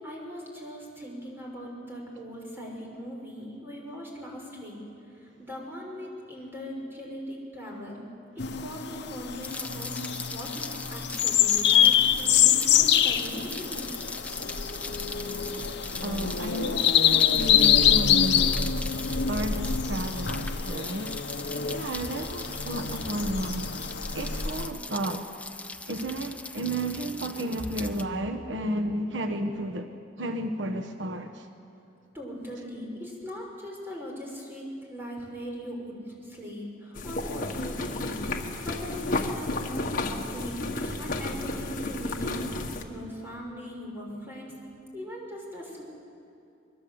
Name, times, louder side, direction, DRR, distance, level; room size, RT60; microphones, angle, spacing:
voice 1, 0.0-4.8 5.4-8.0 8.4-9.9 10.3-13.8 32.1-38.2 38.6-39.9 40.3-42.5 42.9-44.5 44.9-45.8, equal, 10° right, -2 dB, 5.9 m, -40 dB
sound 1, 8.4-24.7, left 9 dB, 65° left, 1.0 m, -25 dB
Rain, 9.4-28.0, left 3 dB, 5° left, 0.8 m, -40 dB
voice 2, 16.0-18.8 19.1-21.1 21.7-23.7 24.1-25.2 25.9-29.9 30.2-31.5, right 1 dB, 75° right, 6 dB, 1.2 m, -32 dB
sound 2, 37.0-42.8, left 2 dB, 45° left, 1.8 m, -32 dB
24.5 x 22.0 x 7.9 m, 2.7 s
head